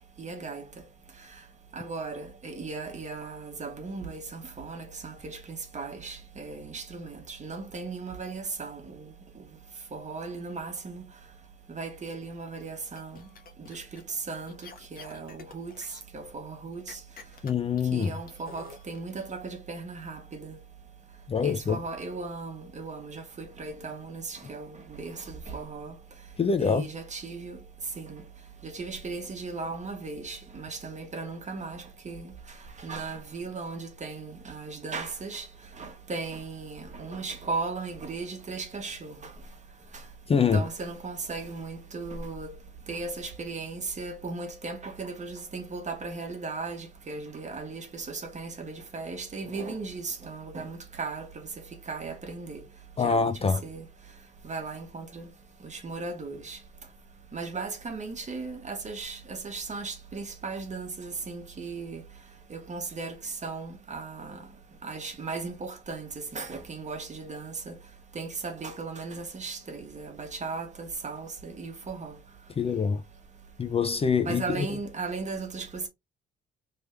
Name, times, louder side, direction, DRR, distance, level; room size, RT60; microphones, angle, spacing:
voice 1, 0.2-0.6 1.7-9.1 9.9-11.0 11.7-13.3 13.7-14.5 14.9-15.8 16.1-17.0 17.9-20.6 21.4-26.0 26.6-27.6 28.0-28.2 28.6-32.3 32.8-35.5 35.8-39.3 40.3-42.5 42.9-51.3 51.9-52.6 53.0-53.8 54.4-55.3 55.6-56.6 57.3-62.0 62.5-64.4 64.8-67.7 68.1-72.1 74.2-75.9, right 4 dB, 35° right, 1.4 m, -37 dB
sound 1, 12.9-14.1 14.5-16.0 16.9-19.2, left 5 dB, 45° left, 1.1 m, -49 dB
voice 2, 17.4-18.1 21.3-21.8 26.4-26.9 40.3-40.6 53.0-53.6 72.6-73.0 73.6-74.7, left 6 dB, 30° left, 0.4 m, -25 dB
3.4 x 3.3 x 3.2 m
cardioid pair, 90°, 20 cm